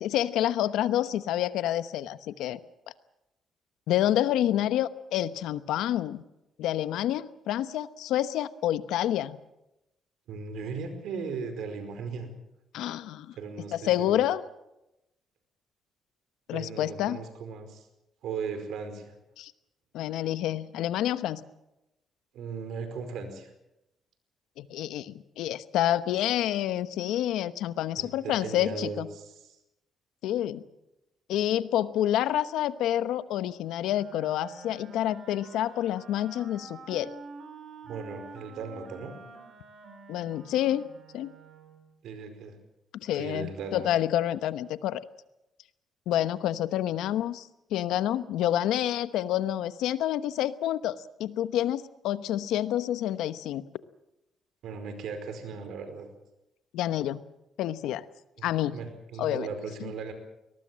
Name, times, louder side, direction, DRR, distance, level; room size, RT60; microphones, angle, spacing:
voice 1, 0.0-2.6 3.9-6.2 6.6-9.4 12.7-13.3 13.7-14.4 16.5-17.2 19.4-19.5 19.9-21.4 24.6-29.1 30.2-30.6 31.3-37.2 40.1-40.9 41.1-41.3 43.0-45.0 46.1-53.6 56.7-57.2 57.6-58.1 58.4-58.8 59.2-59.5, left 12 dB, 90° left, 13 dB, 1.0 m, -28 dB
voice 2, 10.3-12.3 13.3-14.3 16.5-17.9 18.2-19.1 22.3-23.5 28.0-29.6 37.8-39.1 42.0-42.6 43.1-43.9 54.6-56.1 58.4-58.5 58.7-60.1, right 5 dB, 80° right, 8 dB, 4.8 m, -37 dB
Wind instrument woodwind instrument, 33.9-41.9, right 4 dB, 60° right, 4.7 m, -48 dB
22.5 x 19.5 x 7.5 m, 0.90 s
cardioid pair, 90°, 0 cm